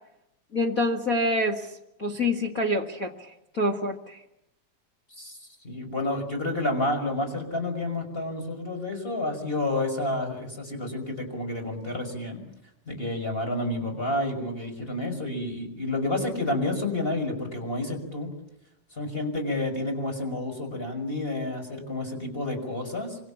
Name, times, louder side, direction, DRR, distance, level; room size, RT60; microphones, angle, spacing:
voice 1, 0.5-1.7 2.0-4.2, left 1 dB, 40° left, 3 dB, 1.2 m, -26 dB
voice 2, 5.2-12.4 12.9-18.3 18.9-23.2, left 2 dB, 15° left, 5 dB, 5.8 m, -30 dB
26.5 x 25.5 x 7.4 m, 0.81 s
omnidirectional pair, 4.7 m